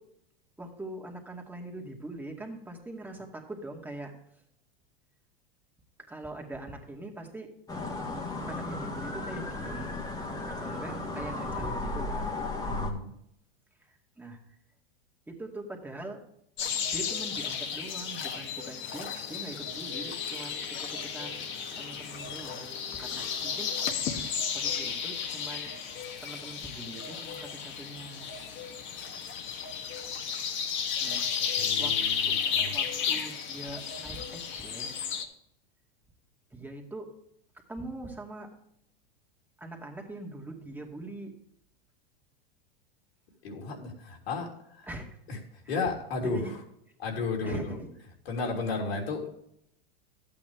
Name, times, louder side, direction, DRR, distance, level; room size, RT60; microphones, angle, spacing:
voice 1, 0.6-4.1 6.1-7.5 8.5-10.0 10.5-12.4 13.8-14.4 15.3-16.2 16.9-21.4 21.8-23.7 24.1-25.7 26.2-28.3 31.0-31.3 31.8-31.9 32.3-32.4 32.6-34.9 36.5-37.1 37.7-38.5 39.6-41.4 44.9-45.0 45.6-45.9 46.2-46.5 47.4-47.9, right 2 dB, 5° right, 0 dB, 2.2 m, -42 dB
sound 1, 7.7-12.9, left 2 dB, 10° left, 1.9 m, -35 dB
voice 2, 12.7-13.2 31.5-32.7 43.4-44.9 45.3-46.4 47.0-47.8 48.3-49.3, left 4 dB, 80° left, 1 dB, 3.4 m, -34 dB
sound 2, 16.6-35.2, left 7 dB, 40° left, 1.6 m, -33 dB
12.0 x 8.7 x 3.4 m, 0.74 s
hypercardioid pair, 115°, 30 cm